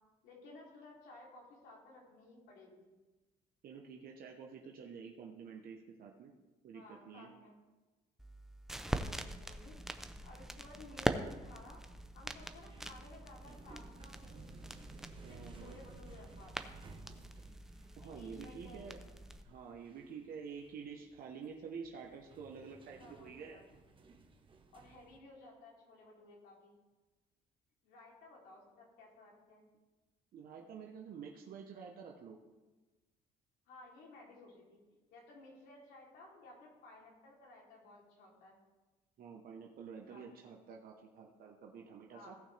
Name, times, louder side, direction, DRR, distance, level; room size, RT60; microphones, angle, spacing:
voice 1, 0.2-2.9 6.7-7.5 8.9-9.8 10.2-11.8 12.1-14.4 15.1-16.8 18.0-18.9 23.0-23.6 24.7-26.8 27.8-29.6 33.7-38.6 39.9-40.3 42.1-42.4, left 2 dB, 85° left, -3 dB, 3.3 m, -56 dB
voice 2, 3.6-6.3 6.6-7.3 15.2-15.8 18.0-19.1 19.4-23.6 30.3-32.4 39.2-42.4, right 6 dB, 60° right, 0 dB, 1.1 m, -49 dB
sound 1, 8.2-19.4, right 1 dB, ahead, 0.6 m, -43 dB
sound 2, 12.5-25.2, right 4 dB, 30° right, 1.1 m, -58 dB
17.0 x 6.1 x 3.4 m, 1.2 s
cardioid pair, 110°, 17 cm